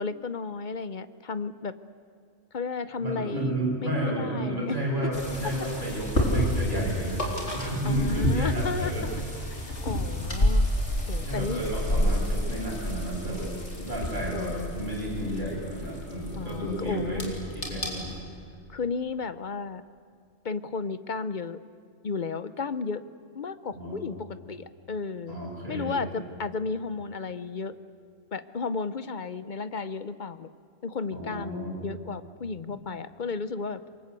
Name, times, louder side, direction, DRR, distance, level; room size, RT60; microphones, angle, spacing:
voice 1, 0.0-1.7 2.5-4.8 7.8-9.2 9.5-10.6 11.1-11.6 14.3-14.8 16.3-17.3 18.7-19.8 20.4-21.6 22.0-23.0 23.3-25.4 25.7-27.7 28.3-30.5 30.8-33.8, left 4 dB, 45° left, 14 dB, 0.8 m, -33 dB
voice 2, 3.0-9.1 11.1-17.3 17.5-18.1 23.7-24.0 25.3-26.0 31.1-31.8, right 1 dB, 45° right, -4 dB, 7.8 m, -31 dB
sound 1, 5.1-18.2, equal, 75° left, 4.0 m, -30 dB
26.0 x 22.5 x 8.3 m, 2.3 s
omnidirectional pair, 1.2 m